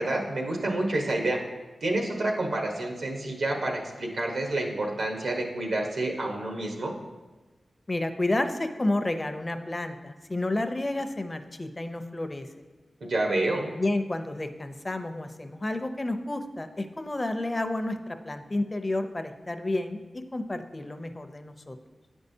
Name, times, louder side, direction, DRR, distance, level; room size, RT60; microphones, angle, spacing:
voice 1, 0.0-1.4 1.8-6.9 13.0-13.6, right 2 dB, 85° right, 1 dB, 1.1 m, -28 dB
voice 2, 7.9-12.6 13.6-20.0 20.3-21.8, left 2 dB, 30° left, 8 dB, 0.5 m, -30 dB
9.0 x 5.3 x 2.7 m, 1.2 s
wide cardioid pair, 75°, 0 cm